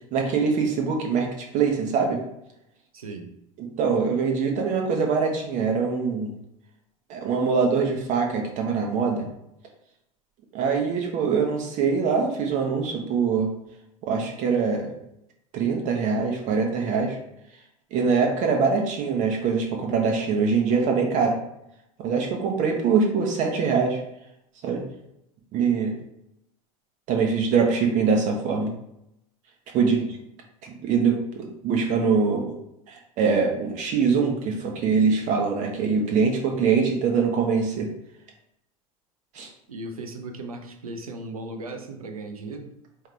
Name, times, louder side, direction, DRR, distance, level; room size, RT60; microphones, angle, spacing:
voice 1, 0.1-2.2 3.6-6.3 7.1-9.3 10.5-13.5 14.0-14.9 15.5-17.2 17.9-21.4 22.0-24.0 24.6-24.8 25.5-26.0 27.1-28.7 29.7-30.0 30.6-32.6 32.9-37.9 39.3-39.5, right 5 dB, 45° right, 2 dB, 1.1 m, -23 dB
voice 2, 2.9-3.3 29.8-30.2 39.7-42.7, right 2 dB, 80° right, 5 dB, 0.7 m, -37 dB
4.7 x 3.1 x 3.3 m, 0.83 s
figure-of-eight pair, 80°, 18 cm